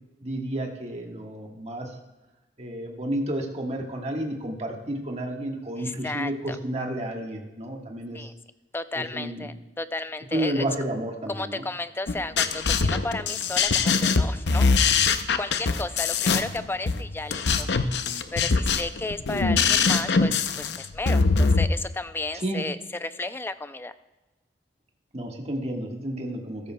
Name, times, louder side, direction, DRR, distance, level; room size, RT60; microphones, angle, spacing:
voice 1, 0.2-1.9 2.6-8.3 8.9-9.5 10.3-11.6 22.3-22.6 25.1-26.7, right 1 dB, 40° right, 1 dB, 1.5 m, -31 dB
voice 2, 5.8-6.6 8.1-8.3 8.7-10.7 11.3-15.0 15.3-23.9, left 2 dB, 15° left, 12 dB, 0.4 m, -33 dB
sound 1, 12.1-21.7, left 5 dB, 70° left, 0.6 m, -22 dB
14.0 x 13.5 x 2.3 m, 1.1 s
head